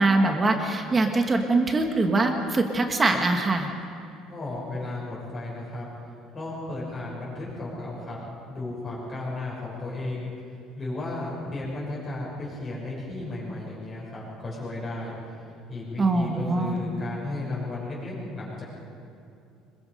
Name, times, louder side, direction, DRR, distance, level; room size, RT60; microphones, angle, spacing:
voice 1, 0.0-3.7 16.0-16.8, right 2 dB, 15° right, 3 dB, 1.5 m, -23 dB
voice 2, 4.3-5.9 6.3-8.2 8.5-10.3 10.8-15.2 15.7-18.6, left 2 dB, 20° left, -7 dB, 6.0 m, -34 dB
26.0 x 22.0 x 5.3 m, 2.5 s
cardioid pair, 175°, 0 cm